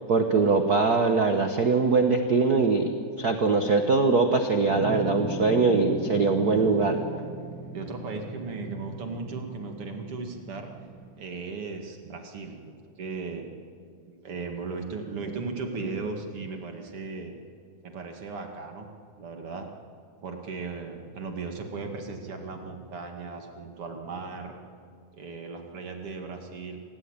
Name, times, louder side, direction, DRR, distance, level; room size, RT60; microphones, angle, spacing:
voice 1, 0.1-7.0, right 4 dB, 80° right, 5 dB, 0.8 m, -22 dB
sound 1, 4.6-11.1, right 2 dB, 30° right, 5.4 m, -38 dB
voice 2, 7.7-10.7 11.2-12.7 13.0-13.5 14.1-17.3 17.8-18.9 19.2-19.7 20.2-24.6 25.1-26.8, right 4 dB, 50° right, 4 dB, 2.7 m, -36 dB
27.0 x 18.0 x 8.9 m, 2.2 s
omnidirectional pair, 3.6 m